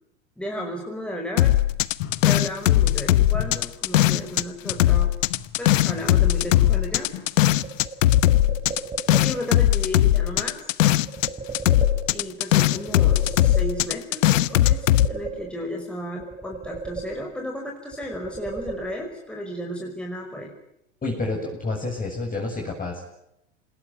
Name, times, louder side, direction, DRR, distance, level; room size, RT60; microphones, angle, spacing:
voice 1, 0.4-1.6 2.2-5.1 5.6-7.1 9.2-10.7 12.1-20.5, equal, 5° left, 0 dB, 5.6 m, -33 dB
sound 1, 1.4-4.4 4.7-11.3 11.5-15.1, left 14 dB, 80° left, 1.0 m, -19 dB
sound 2, 1.6-1.7 2.0-3.1 3.3-7.5, left 10 dB, 60° left, 4.7 m, -37 dB
sound 3, 7.6-9.6 11.1-12.4 12.8-14.1 14.5-15.8 16.2-17.6 17.9-19.3, right 4 dB, 20° right, 5.8 m, -36 dB
voice 2, 21.0-23.1, left 2 dB, 20° left, -1 dB, 7.8 m, -29 dB
27.5 x 20.0 x 9.5 m, 0.80 s
hypercardioid pair, 100°, 38 cm